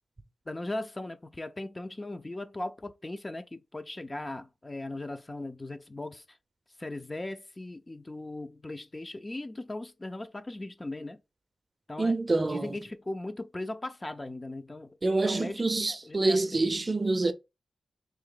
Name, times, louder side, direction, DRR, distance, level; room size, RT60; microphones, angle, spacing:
voice 1, 0.5-6.2 6.8-11.2 11.9-12.1 12.5-14.9 15.2-16.6, left 2 dB, 25° left, 0.5 m, -38 dB
voice 2, 12.0-12.7 15.0-17.3, right 2 dB, 30° right, 0.6 m, -26 dB
3.7 x 3.1 x 3.8 m
wide cardioid pair, 100°, 0 cm